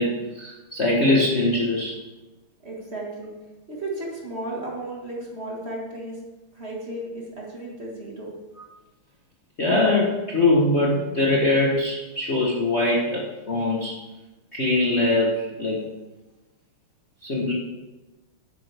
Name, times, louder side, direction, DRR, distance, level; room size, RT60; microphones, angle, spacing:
voice 1, 0.0-1.9 8.6-8.7 9.6-14.0 14.5-15.8 17.2-17.5, left 2 dB, 40° left, -4 dB, 1.2 m, -22 dB
voice 2, 2.6-3.3 3.7-6.2 6.5-8.3, right 1 dB, 30° right, -3 dB, 1.8 m, -34 dB
10.5 x 8.5 x 3.4 m, 1.1 s
omnidirectional pair, 2.3 m